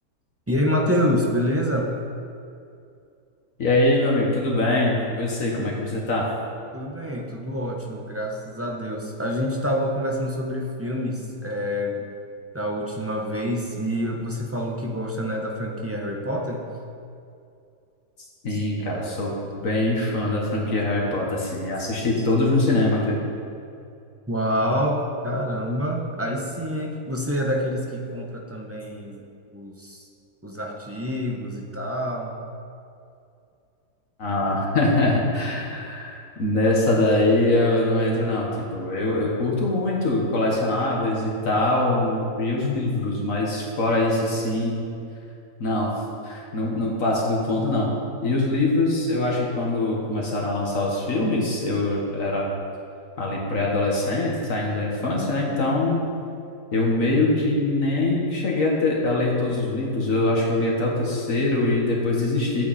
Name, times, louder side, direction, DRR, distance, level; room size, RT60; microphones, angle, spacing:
voice 1, 0.5-1.9 5.4-5.9 6.7-12.1 12.5-16.6 18.5-19.0 24.3-29.2 29.5-30.0 30.4-32.3 34.5-34.6, equal, 10° right, 0 dB, 0.7 m, -27 dB
voice 2, 3.6-6.2 18.4-23.2 34.2-44.8 45.6-47.9 48.2-52.5 53.2-56.0 56.7-62.7, left 2 dB, 55° left, -2 dB, 1.8 m, -23 dB
11.0 x 8.9 x 4.2 m, 2.5 s
omnidirectional pair, 1.7 m